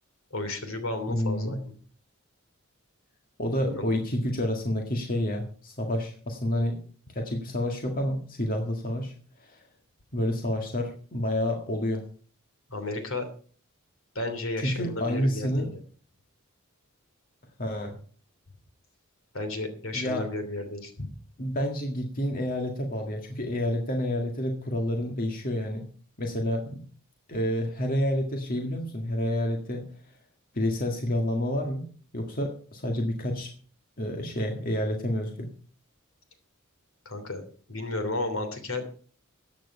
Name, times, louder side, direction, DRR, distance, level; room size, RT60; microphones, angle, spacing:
voice 1, 0.3-1.6 3.6-3.9 12.7-13.3 14.1-15.7 19.3-21.1 37.0-37.4 37.7-38.9, left 2 dB, 65° left, 8 dB, 3.1 m, -33 dB
voice 2, 1.1-1.6 3.4-6.8 7.1-9.7 10.1-12.0 14.6-15.7 17.6-18.0 19.9-20.3 21.4-25.8 26.2-26.8 27.3-29.9 30.5-31.8 32.1-33.5 34.0-35.5, left 1 dB, 40° left, 3 dB, 1.9 m, -29 dB
14.5 x 9.2 x 5.5 m, 0.43 s
head